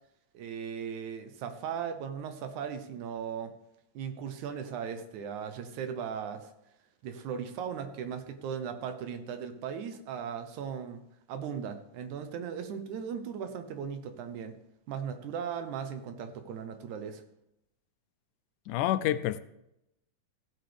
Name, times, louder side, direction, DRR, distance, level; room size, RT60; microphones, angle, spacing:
voice 1, 0.3-3.5 3.9-6.5 7.0-11.0 11.3-14.5 14.9-17.2, right 7 dB, 75° right, 8 dB, 2.2 m, -37 dB
voice 2, 18.7-19.4, left 13 dB, 85° left, 13 dB, 2.0 m, -28 dB
15.5 x 8.0 x 3.4 m, 0.83 s
omnidirectional pair, 3.6 m